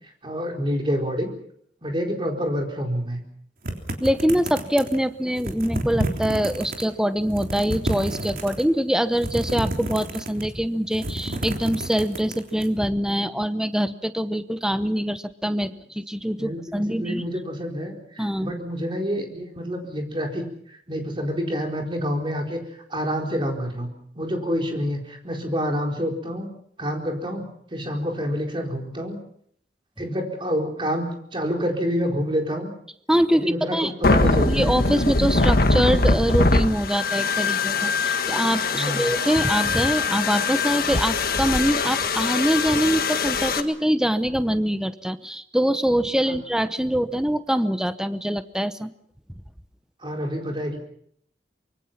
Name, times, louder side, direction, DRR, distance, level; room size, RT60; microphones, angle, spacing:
voice 1, 0.2-1.3 1.8-3.2 15.7-15.8 16.4-20.4 20.9-22.6 22.9-23.9 24.2-26.5 26.8-27.4 27.7-29.2 30.0-32.7 33.3-34.7 38.7-39.1 50.0-50.8, equal, 30° right, 2 dB, 4.4 m, -27 dB
sound 1, 3.6-5.0 5.4-6.8 7.2-8.6 9.1-10.5 10.8-12.7, right 1 dB, 55° right, 3.5 m, -30 dB
voice 2, 4.0-17.2 18.2-18.5 33.1-33.9 34.5-48.9, equal, 5° right, 11 dB, 0.8 m, -24 dB
sound 2, 34.0-43.6, left 3 dB, 55° left, 1.6 m, -22 dB
25.0 x 23.5 x 5.9 m, 0.68 s
head